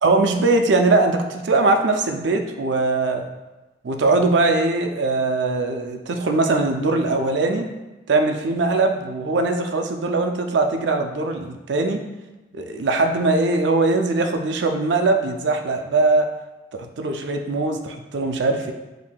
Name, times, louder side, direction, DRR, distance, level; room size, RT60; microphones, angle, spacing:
voice 1, 0.0-3.2 3.8-7.7 8.1-12.0 12.5-16.3 16.7-18.7, right 3 dB, 70° right, 5 dB, 0.4 m, -21 dB
7.2 x 2.7 x 2.2 m, 1.1 s
head